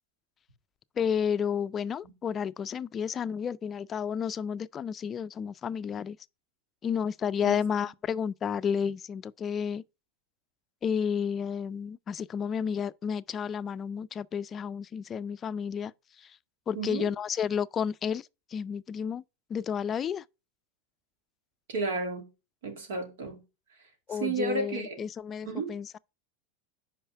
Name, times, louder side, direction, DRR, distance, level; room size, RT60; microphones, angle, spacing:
voice 1, 1.0-6.2 6.8-9.8 10.8-15.9 16.2-16.4 16.7-19.2 19.5-20.2 24.1-26.0, left 7 dB, 30° left, 0.3 m, -31 dB
voice 2, 16.7-17.1 21.7-22.3 22.6-23.4 24.1-25.0 25.5-25.8, right 3 dB, 85° right, 2.4 m, -32 dB
5.5 x 5.0 x 5.7 m
supercardioid pair, 120°, 0 cm